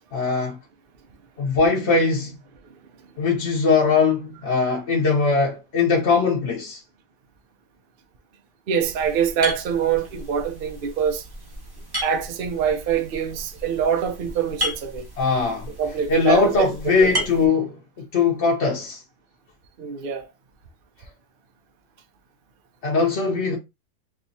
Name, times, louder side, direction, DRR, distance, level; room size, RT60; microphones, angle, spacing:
voice 1, 0.1-0.6 1.4-2.4 3.2-6.8 15.2-15.7 16.1-17.8 18.1-19.0 22.8-23.6, left 4 dB, 50° left, 1.0 m, -20 dB
voice 2, 8.7-11.2 12.0-15.1 15.8-17.1 19.8-20.3, right 7 dB, 80° right, 0.4 m, -25 dB
sound 1, 8.8-17.5, equal, 20° right, 0.6 m, -34 dB
3.9 x 3.0 x 2.7 m
omnidirectional pair, 1.8 m